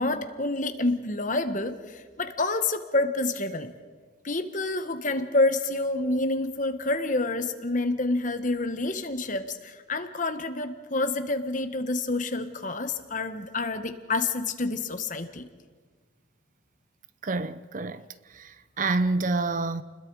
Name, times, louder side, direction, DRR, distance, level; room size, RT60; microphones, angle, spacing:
voice 1, 0.0-3.7 4.2-15.4, left 2 dB, 40° left, 1.4 m, -28 dB
voice 2, 17.2-18.0 18.4-18.5 18.8-19.8, right 3 dB, 40° right, 0.6 m, -27 dB
30.0 x 21.0 x 4.8 m
head